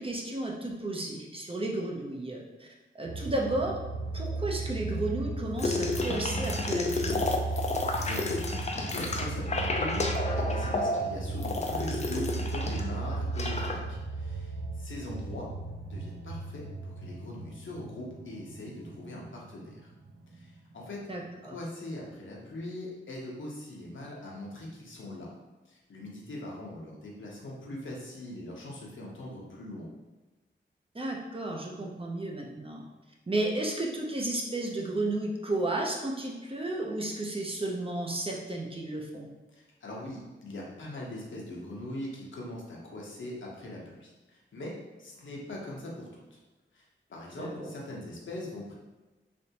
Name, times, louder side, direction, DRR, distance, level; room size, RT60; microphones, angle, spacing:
voice 1, 0.0-2.7 2.9-3.8 4.1-7.2 21.1-21.6 30.9-32.8 33.3-39.3 47.4-47.7, right 2 dB, 25° right, -1 dB, 0.6 m, -33 dB
sound 1, 3.0-20.6 20.9-21.0, right 3 dB, 80° right, 0.5 m, -36 dB
sound 2, 5.6-12.9 13.1-13.8, left 2 dB, 35° left, 0.4 m, -31 dB
voice 2, 7.5-10.1 10.4-14.5 14.8-15.5 15.9-19.9 20.3-21.0 21.4-25.3 25.7-29.9 39.5-46.4 46.7-46.8 47.1-48.7, left 1 dB, 70° left, -3 dB, 0.8 m, -41 dB
3.4 x 2.6 x 2.8 m, 1.1 s
wide cardioid pair, 75°, 20 cm